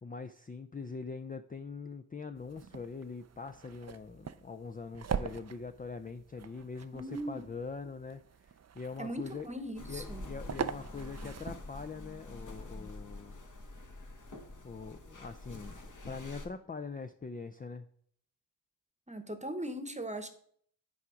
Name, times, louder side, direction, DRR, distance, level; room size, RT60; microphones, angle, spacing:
voice 1, 0.0-9.5 9.9-13.4 14.6-15.8 16.1-17.9, left 4 dB, 20° left, 8 dB, 0.4 m, -43 dB
sound 1, 2.4-11.9, right 7 dB, 40° right, 0.4 m, -43 dB
voice 2, 6.9-7.5 9.0-10.2 19.1-20.3, right 1 dB, 15° right, 9 dB, 1.0 m, -39 dB
sound 2, 9.8-16.5, left 2 dB, 45° left, 1.2 m, -46 dB
8.4 x 4.7 x 5.0 m, 0.62 s
wide cardioid pair, 55°, 41 cm